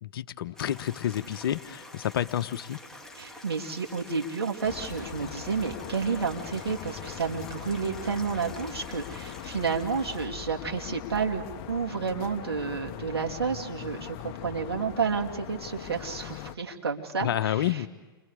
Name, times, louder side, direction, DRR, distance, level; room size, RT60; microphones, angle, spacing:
voice 1, 0.0-2.8 17.2-17.9, left 11 dB, 65° left, 11 dB, 1.0 m, -29 dB
Stream, 0.5-10.3, left 1 dB, 5° left, 2.2 m, -47 dB
voice 2, 3.1-17.8, right 5 dB, 80° right, 0 dB, 2.7 m, -31 dB
sound 1, 4.6-16.5, left 12 dB, 40° left, 0.9 m, -41 dB
29.5 x 23.5 x 4.9 m, 1.2 s
hypercardioid pair, 110°, 13 cm